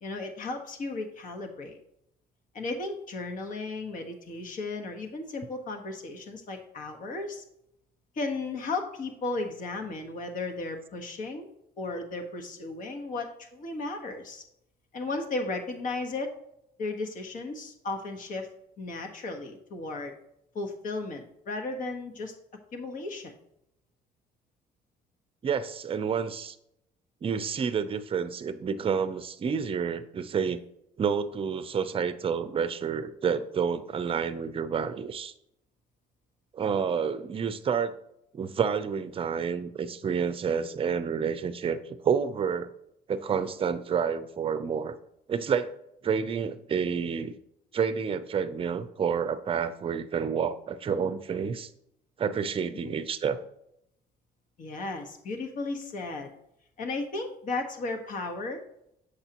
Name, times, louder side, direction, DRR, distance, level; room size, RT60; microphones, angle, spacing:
voice 1, 0.0-1.8 2.5-7.4 8.1-11.5 11.8-14.4 14.9-16.3 16.8-18.5 18.8-20.1 20.5-22.3 22.7-23.3 52.7-53.0 54.6-56.3 56.8-58.6, left 3 dB, 50° left, 4 dB, 1.3 m, -35 dB
voice 2, 25.4-26.6 27.2-30.6 31.0-35.3 36.5-37.9 38.3-41.8 42.0-42.7 43.1-45.0 45.3-45.7 46.0-47.3 47.7-51.7 52.2-53.4, right 6 dB, 35° right, 11 dB, 0.6 m, -29 dB
7.9 x 6.5 x 2.9 m, 0.78 s
cardioid pair, 110°, 17 cm